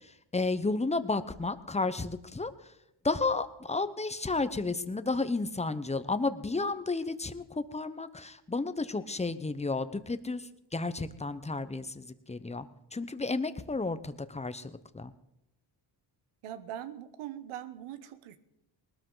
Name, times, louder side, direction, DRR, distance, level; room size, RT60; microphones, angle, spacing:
voice 1, 0.0-2.5 3.0-15.1, left 3 dB, 15° left, 1.0 m, -32 dB
voice 2, 16.4-18.4, right 11 dB, 90° right, 1.1 m, -41 dB
19.5 x 13.0 x 4.0 m
cardioid pair, 70°, 49 cm